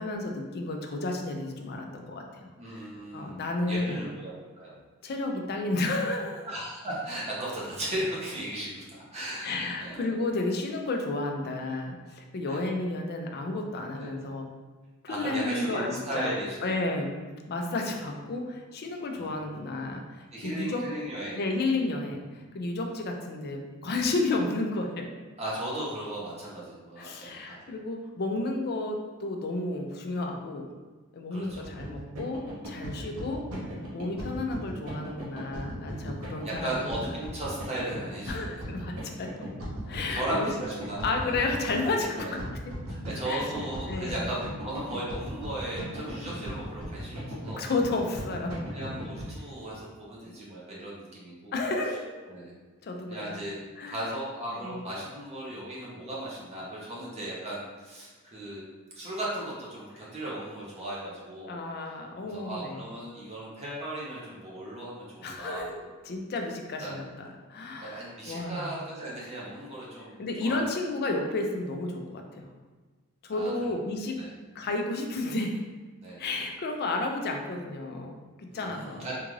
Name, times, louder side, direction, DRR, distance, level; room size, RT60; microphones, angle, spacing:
voice 1, 0.0-4.0 5.0-6.5 9.4-14.5 15.0-16.3 16.6-17.2 17.5-20.8 21.4-25.1 27.0-30.7 31.1-33.4 33.9-37.1 38.3-39.3 39.9-40.5 41.0-42.4 43.3-43.5 43.9-44.2 47.6-48.6 51.5-52.4 52.8-53.4 53.8-54.0 54.5-54.8 61.5-62.9 65.2-67.1 67.5-68.7 70.2-72.5 73.2-74.2 74.5-75.6 76.2-79.2, left 2 dB, 45° left, 3 dB, 0.4 m, -32 dB
voice 2, 2.6-4.3 4.6-4.8 6.4-10.2 12.5-12.7 14.0-14.1 15.1-16.8 19.1-19.6 20.3-21.7 25.4-27.7 31.3-31.7 32.9-33.1 34.1-34.9 36.4-38.7 39.8-41.4 42.2-42.3 42.9-47.7 48.7-51.5 52.3-52.5 53.1-53.6 53.9-58.6 58.9-61.6 62.2-65.7 66.8-67.0 67.8-70.1 70.4-70.6 73.3-73.5 74.2-74.3 76.0-76.2 78.5-79.1, right 1 dB, 30° right, -6 dB, 0.7 m, -36 dB
sound 1, 31.5-49.3, equal, 80° right, 0.9 m, -37 dB
3.6 x 2.4 x 3.1 m, 1.4 s
head